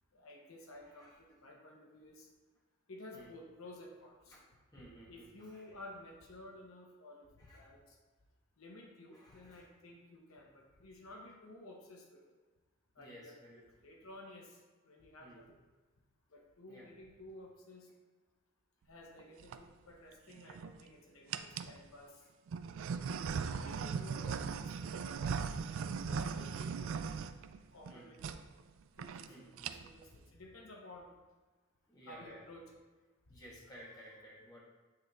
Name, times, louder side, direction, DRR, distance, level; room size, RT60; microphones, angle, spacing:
voice 1, 0.1-2.3 2.9-4.4 5.1-7.8 8.6-12.2 13.0-13.4 13.8-14.6 14.8-15.6 16.3-17.9 18.9-22.2 22.9-27.0 27.7-28.4 29.0-31.1 32.1-32.6 33.3-33.4, left 1 dB, 85° left, 0 dB, 1.1 m, -53 dB
voice 2, 0.8-1.2 3.1-3.3 4.3-5.8 7.4-7.7 9.1-9.7 13.0-13.6 15.2-15.4 16.7-16.9 27.9-28.2 29.2-29.9 31.9-32.4 33.3-34.6, equal, 20° left, -6 dB, 1.6 m, -56 dB
pencil sharpener, 19.2-19.6 20.3-20.8 21.3-21.8 22.5-27.9 28.2-28.4 28.7-28.8 29.0-29.3 29.5-30.0, right 6 dB, 70° right, 0.3 m, -39 dB
8.7 x 3.6 x 3.4 m, 1.3 s
head